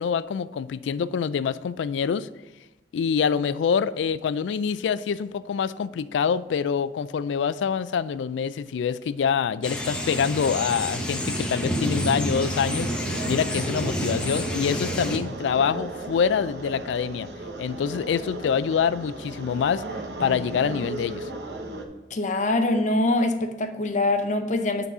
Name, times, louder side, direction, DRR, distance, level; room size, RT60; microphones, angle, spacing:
voice 1, 0.0-2.3 2.9-17.3 17.6-19.8 20.2-21.3, left 7 dB, 90° left, 16 dB, 0.3 m, -25 dB
sound 1, 9.6-15.2, equal, 5° left, 0.8 m, -28 dB
sound 2, 12.3-21.8, right 2 dB, 65° right, 0.8 m, -36 dB
voice 2, 22.1-24.9, left 2 dB, 45° left, 7 dB, 0.6 m, -24 dB
8.5 x 4.0 x 5.4 m, 1.0 s
head